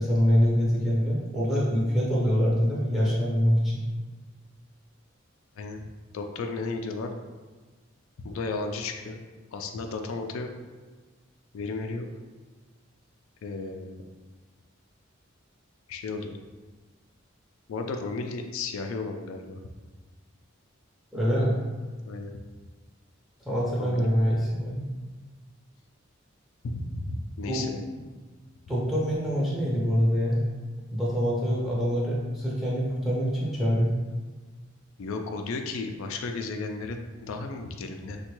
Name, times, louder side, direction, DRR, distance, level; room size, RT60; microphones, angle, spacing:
voice 1, 0.0-3.8 21.1-21.6 23.5-24.8 27.5-27.7 28.7-30.4 30.9-33.9, equal, ahead, -7 dB, 0.5 m, -25 dB
voice 2, 6.1-7.1 8.2-9.2 9.5-10.5 11.5-12.1 13.4-14.0 15.9-16.4 17.7-19.6 22.1-22.3 23.8-24.1 26.6-27.8 35.0-38.2, left 3 dB, 90° left, 4 dB, 0.3 m, -34 dB
3.4 x 2.2 x 3.0 m, 1.3 s
head